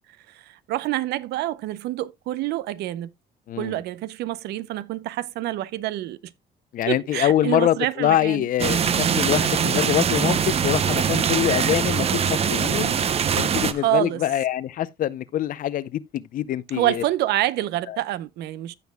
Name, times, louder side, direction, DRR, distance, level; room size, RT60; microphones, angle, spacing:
voice 1, 0.3-3.1 3.6-6.3 6.9-8.5 13.7-14.2 16.7-18.7, right 15 dB, 75° right, 0.6 m, -27 dB
voice 2, 3.5-3.8 6.7-12.9 13.3-17.0 17.9-18.0, left 12 dB, 55° left, 0.6 m, -24 dB
sound 1, 8.6-13.7, right 7 dB, 35° right, 0.6 m, -22 dB
15.5 x 5.4 x 2.2 m
cardioid pair, 110°, 17 cm